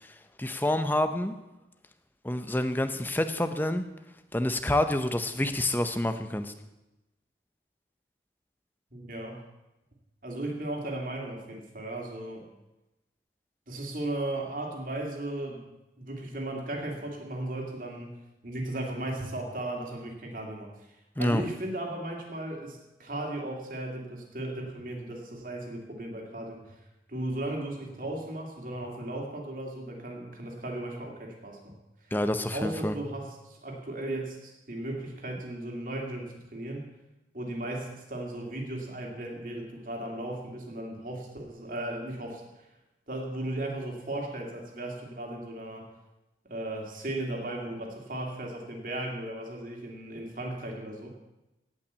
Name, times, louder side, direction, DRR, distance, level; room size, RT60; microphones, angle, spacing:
voice 1, 0.0-1.4 2.2-3.8 4.3-6.5 21.2-21.4 32.1-32.9, left 1 dB, 10° left, 9 dB, 0.7 m, -28 dB
voice 2, 8.9-9.4 10.2-12.5 13.7-15.6 16.0-18.1 18.4-20.7 21.2-26.8 27.1-31.8 32.5-36.9 37.3-42.4 43.1-45.9 46.4-51.1, right 1 dB, 50° right, 1 dB, 2.6 m, -36 dB
17.5 x 5.9 x 8.1 m, 0.99 s
head